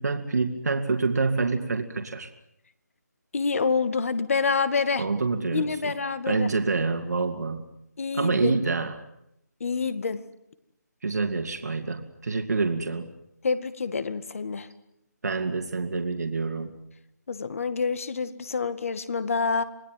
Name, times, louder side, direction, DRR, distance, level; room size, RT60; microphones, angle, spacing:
voice 1, 0.0-2.3 5.0-5.9 6.3-7.6 8.1-8.9 11.0-13.1 15.2-16.7, right 4 dB, 65° right, 4 dB, 2.6 m, -27 dB
voice 2, 3.3-5.1 5.5-6.5 8.0-8.6 9.6-10.2 13.4-14.7 17.3-19.6, left 4 dB, 50° left, 12 dB, 2.1 m, -27 dB
28.0 x 19.5 x 9.3 m, 0.81 s
figure-of-eight pair, 165°, 10 cm